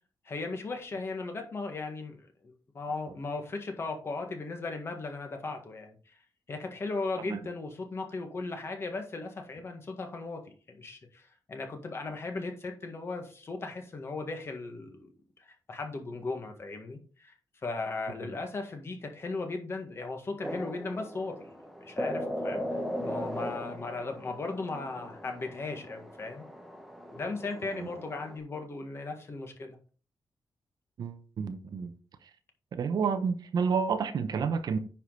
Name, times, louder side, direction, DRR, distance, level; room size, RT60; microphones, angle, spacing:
voice 1, 0.2-6.0 6.5-10.4 10.7-15.1 15.4-17.3 17.6-21.5 21.8-26.4 27.1-29.8, left 3 dB, 35° left, 4 dB, 1.7 m, -37 dB
sound 1, 20.4-28.4, equal, ahead, 1.0 m, -38 dB
voice 2, 31.0-31.9 32.2-32.3 32.7-34.8, right 6 dB, 65° right, 10 dB, 0.9 m, -30 dB
9.8 x 5.0 x 4.0 m, 0.39 s
wide cardioid pair, 165°, 8 cm